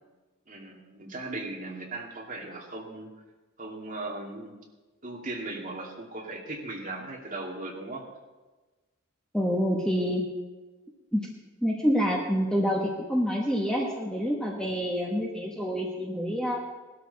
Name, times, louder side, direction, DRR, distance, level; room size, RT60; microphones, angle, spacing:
voice 1, 0.5-3.1 3.6-4.5 5.0-8.0, right 2 dB, 35° right, -2 dB, 2.5 m, -38 dB
voice 2, 9.3-10.2 11.1-11.3 11.6-16.6, equal, 5° left, -2 dB, 1.4 m, -27 dB
18.5 x 12.5 x 4.2 m, 1.2 s
head